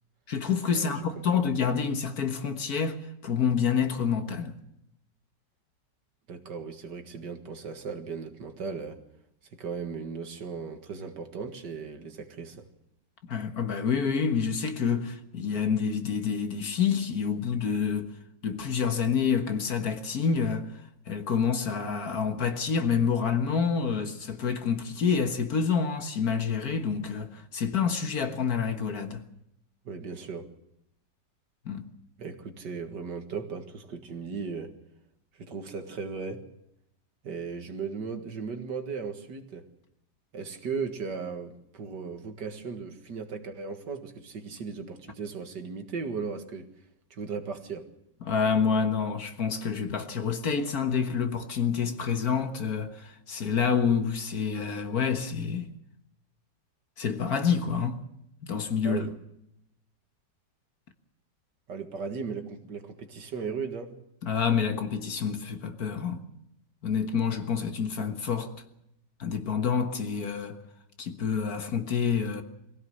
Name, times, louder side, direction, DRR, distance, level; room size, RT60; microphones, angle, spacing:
voice 1, 0.3-4.6 13.2-18.1 18.4-20.7 21.1-29.2 31.7-31.8 48.2-55.7 57.0-58.1 58.4-59.1 64.2-66.3 66.8-68.5 69.2-70.6 71.0-72.4, left 6 dB, 55° left, 1.9 m, -28 dB
voice 2, 0.8-1.4 6.3-9.0 9.5-12.7 29.8-30.5 32.2-34.7 35.4-36.4 37.2-39.7 40.3-46.7 47.1-47.9 58.8-59.1 61.7-63.9, right 5 dB, 70° right, 2.3 m, -37 dB
23.0 x 16.5 x 7.8 m
omnidirectional pair, 1.9 m